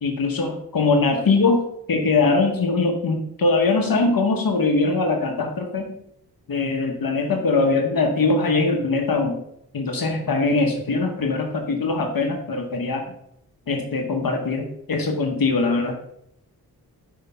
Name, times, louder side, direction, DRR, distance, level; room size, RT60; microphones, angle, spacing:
voice 1, 0.0-5.9 6.5-9.4 9.7-13.1 13.7-16.0, left 3 dB, 60° left, 4 dB, 1.0 m, -22 dB
5.8 x 4.8 x 5.6 m, 0.75 s
wide cardioid pair, 95°, 38 cm